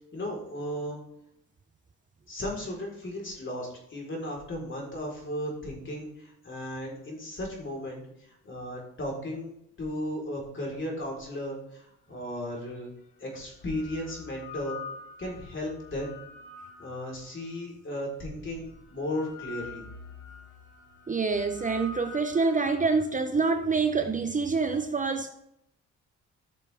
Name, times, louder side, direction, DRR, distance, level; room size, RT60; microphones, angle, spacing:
voice 1, 0.1-1.0 2.3-12.9 13.2-14.8 15.2-16.1 16.8-18.7 18.9-19.8, left 1 dB, 40° left, -2 dB, 4.1 m, -35 dB
sound 1, 12.3-12.4 13.3-17.6 18.3-23.0, left 4 dB, 85° left, 3.6 m, -45 dB
voice 2, 21.1-25.3, right 4 dB, 25° right, 7 dB, 0.8 m, -26 dB
14.5 x 6.5 x 3.5 m, 0.78 s
cardioid pair, 90°, 30 cm